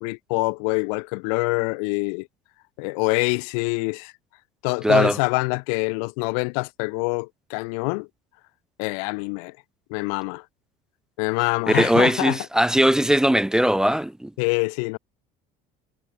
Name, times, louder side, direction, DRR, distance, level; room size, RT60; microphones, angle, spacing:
voice 1, 0.0-2.3 2.8-4.1 4.6-8.1 8.8-9.5 9.9-10.4 11.2-12.4 14.4-15.0, left 39 dB, 85° left, 1.6 m, -25 dB
voice 2, 4.8-5.2 11.7-14.3, right 1 dB, 5° right, 0.6 m, -19 dB
cardioid pair, 160°, 17 cm